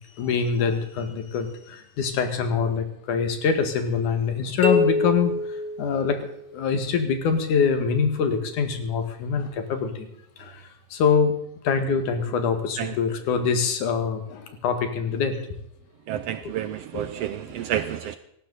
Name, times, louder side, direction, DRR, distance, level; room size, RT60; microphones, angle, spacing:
voice 1, 0.1-10.1 10.4-11.4 11.6-15.4 16.4-16.5 16.9-17.0, left 6 dB, 85° left, 7 dB, 3.2 m, -25 dB
sound 1, 4.6-6.6, left 2 dB, 20° left, 1.3 m, -25 dB
voice 2, 16.1-18.2, right 11 dB, 75° right, 11 dB, 1.5 m, -30 dB
18.5 x 15.0 x 4.0 m, 0.79 s
omnidirectional pair, 3.4 m